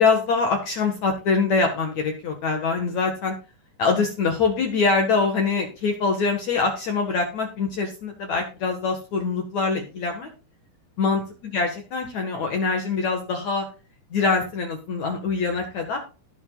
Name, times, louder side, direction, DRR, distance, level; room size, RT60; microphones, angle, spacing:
voice 1, 0.0-3.4 3.8-10.3 11.0-11.2 11.5-13.7 14.1-16.0, left 4 dB, 55° left, 3 dB, 2.6 m, -24 dB
18.5 x 7.1 x 2.4 m, 0.34 s
omnidirectional pair, 4.3 m